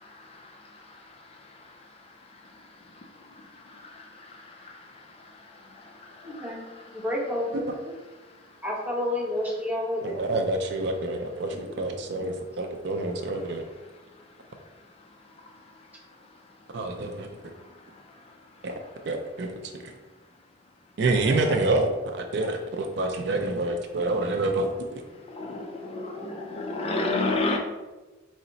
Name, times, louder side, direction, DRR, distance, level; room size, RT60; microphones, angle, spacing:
voice 1, 6.2-6.6 6.9-7.7 8.6-10.2 11.5-11.8, left 1 dB, 10° right, -5 dB, 0.9 m, -30 dB
voice 2, 10.0-13.6 16.7-17.3 18.6-18.7 19.1-19.5 21.0-24.7, right 2 dB, 55° right, 4 dB, 0.4 m, -27 dB
voice 3, 25.3-27.6, left 2 dB, 30° left, 0 dB, 0.4 m, -28 dB
4.8 x 2.1 x 3.9 m, 1.2 s
head